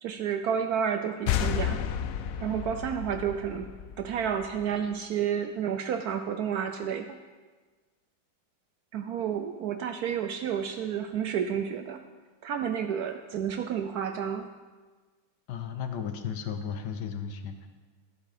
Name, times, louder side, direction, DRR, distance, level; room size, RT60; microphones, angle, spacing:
voice 1, 0.0-1.8 2.4-3.7 4.0-7.2 8.9-12.0 12.4-14.5, right 8 dB, 70° right, 7 dB, 0.9 m, -30 dB
sound 1, 1.3-4.7, left 10 dB, 90° left, 0.7 m, -32 dB
voice 2, 15.5-17.7, left 7 dB, 70° left, 7 dB, 1.4 m, -34 dB
12.5 x 7.6 x 4.9 m, 1.4 s
omnidirectional pair, 2.0 m